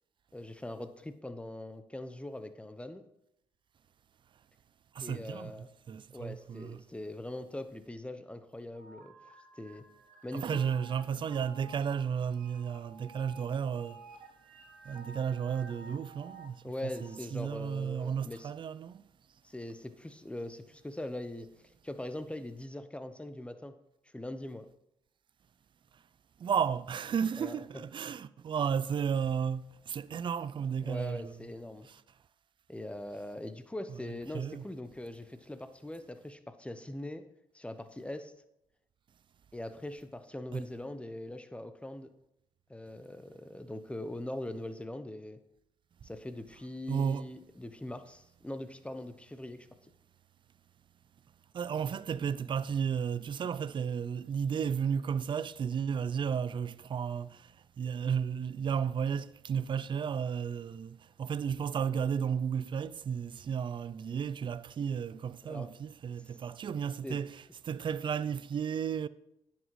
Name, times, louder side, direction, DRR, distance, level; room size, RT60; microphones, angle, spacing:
voice 1, 0.3-3.0 5.0-5.7 6.1-9.1 9.6-9.9 10.2-10.6 16.6-18.5 19.4-21.5 21.8-23.8 24.1-24.7 27.4-27.6 30.8-31.9 32.7-37.3 37.5-38.3 39.5-42.1 42.7-45.4 46.0-49.7 65.5-65.7 67.0-67.2, left 1 dB, 10° left, 0.8 m, -41 dB
voice 2, 4.9-6.8 10.3-14.0 14.8-19.0 25.9-26.0 26.4-31.4 31.9-32.0 33.9-34.0 34.3-34.6 40.5-40.6 46.9-47.3 51.5-69.1, right 7 dB, 45° right, 0.4 m, -33 dB
sound 1, 8.7-17.2, right 3 dB, 80° right, 1.4 m, -53 dB
9.8 x 7.4 x 3.2 m
supercardioid pair, 60°, 12 cm